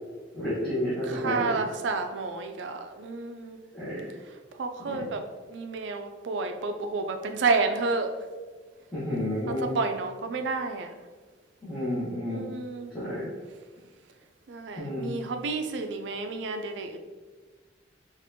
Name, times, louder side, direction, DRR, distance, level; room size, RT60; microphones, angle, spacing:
voice 1, 0.3-1.5 3.7-4.1 4.8-5.0 8.9-9.7 11.6-12.4 12.9-13.3 14.8-15.1, left 1 dB, 5° left, -13 dB, 1.1 m, -31 dB
voice 2, 1.0-3.6 4.6-8.1 9.5-10.9 12.3-12.9 14.5-17.0, right 3 dB, 75° right, 6 dB, 0.4 m, -30 dB
4.2 x 2.5 x 2.7 m, 1.4 s
head